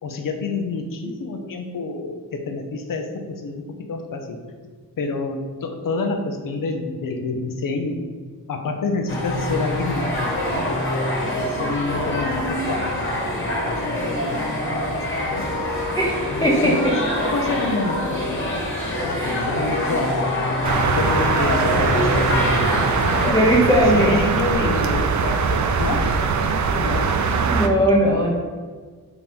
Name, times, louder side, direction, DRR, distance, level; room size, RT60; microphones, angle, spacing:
voice 1, 0.0-4.4 5.0-8.0 8.5-10.8 11.2-15.5 16.3-17.0 17.3-18.6 19.0-20.6 20.9-22.9 23.6-26.1 26.4-27.1 28.0-28.3, left 3 dB, 60° left, 4 dB, 0.6 m, -28 dB
sound 1, 9.1-23.3, left 1 dB, 30° left, 1.3 m, -25 dB
voice 2, 15.9-16.8 19.1-19.4 19.9-20.0 23.2-24.2 24.6-24.7 27.5-28.3, equal, 10° left, -5 dB, 0.8 m, -19 dB
sound 2, 20.6-27.7, right 5 dB, 50° right, 0.5 m, -21 dB
3.7 x 3.0 x 3.6 m, 1.5 s
supercardioid pair, 45°, 38 cm